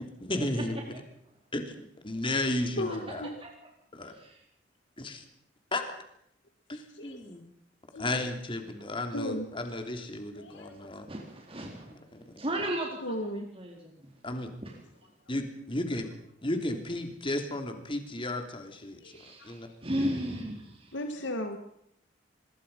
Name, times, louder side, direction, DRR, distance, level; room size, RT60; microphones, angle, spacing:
voice 1, 0.2-1.0 1.5-3.2 3.9-4.2 5.0-5.2 5.7-5.8 6.7-7.4 8.0-11.1 11.9-12.2 14.2-14.5 15.3-16.1 16.4-19.7, left 1 dB, 30° left, 6 dB, 3.2 m, -34 dB
voice 2, 2.8-3.3 6.7-7.2 7.9-8.2 9.1-9.5 10.4-10.7 13.0-13.5 19.0-19.6 20.9-21.6, left 1 dB, 75° left, 5 dB, 2.1 m, -36 dB
voice 3, 11.1-11.9 12.4-13.8 14.6-14.7 19.1-20.9, equal, 30° right, 0 dB, 4.0 m, -34 dB
25.0 x 22.0 x 5.6 m, 0.72 s
head